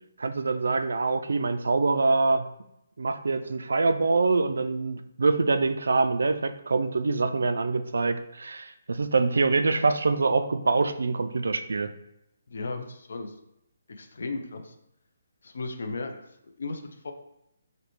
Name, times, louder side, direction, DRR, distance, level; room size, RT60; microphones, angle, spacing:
voice 1, 0.2-2.5 3.0-11.9, right 3 dB, 85° right, 9 dB, 0.3 m, -25 dB
voice 2, 12.5-13.3 13.9-14.7 15.4-17.1, left 3 dB, 60° left, 6 dB, 0.5 m, -36 dB
5.0 x 2.2 x 3.1 m, 0.80 s
hypercardioid pair, 180°, 0 cm